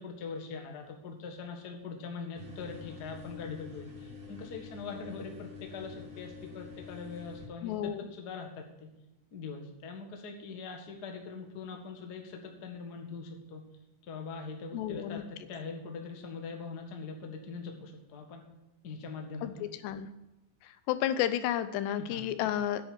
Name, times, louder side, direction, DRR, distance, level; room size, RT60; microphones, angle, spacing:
voice 1, 0.0-8.9 9.3-13.6 14.1-15.2 15.5-18.4 18.8-19.7 22.0-22.2, left 4 dB, 60° left, 2 dB, 1.0 m, -42 dB
sound 1, 2.4-7.5, left 5 dB, 35° right, 1.9 m, -47 dB
voice 2, 7.6-8.1 14.7-15.2 19.4-20.1 20.6-22.9, left 11 dB, 85° left, 12 dB, 2.9 m, -32 dB
10.0 x 8.2 x 6.0 m, 0.98 s
omnidirectional pair, 4.8 m